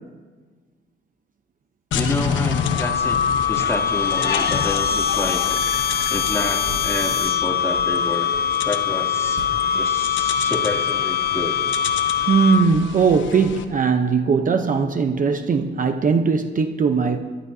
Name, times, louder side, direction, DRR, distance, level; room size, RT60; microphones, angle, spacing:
sound 1, 1.9-13.6, left 7 dB, 70° left, 1.0 m, -30 dB
voice 1, 1.9-3.2 3.5-5.6 6.1-8.3 8.6-9.4 9.7-11.6, left 1 dB, 15° left, 2.7 m, -29 dB
sound 2, 2.5-12.9, left 8 dB, 50° left, 0.7 m, -23 dB
sound 3, 6.7-7.3 9.4-10.4, right 3 dB, 65° right, 2.0 m, -39 dB
voice 2, 12.3-17.2, right 5 dB, 40° right, 0.9 m, -19 dB
21.5 x 14.0 x 2.8 m
cardioid pair, 90°, 20 cm